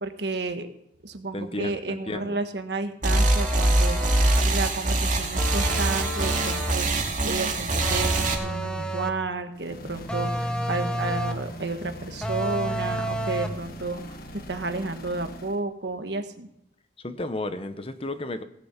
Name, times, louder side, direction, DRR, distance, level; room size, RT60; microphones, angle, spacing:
voice 1, 0.0-0.7 1.0-16.5, right 3 dB, 70° right, 7 dB, 1.5 m, -32 dB
voice 2, 1.3-2.4 17.0-18.4, left 2 dB, 30° left, 10 dB, 1.0 m, -33 dB
sound 1, 3.0-8.3, right 2 dB, 45° right, 2.6 m, -23 dB
sound 2, 3.1-4.6 5.4-6.9 7.8-9.3 10.1-11.5 12.2-13.7, right 1 dB, 5° left, 1.1 m, -30 dB
sound 3, 9.5-15.6, equal, 55° left, 1.6 m, -41 dB
17.5 x 7.7 x 7.3 m, 0.82 s
head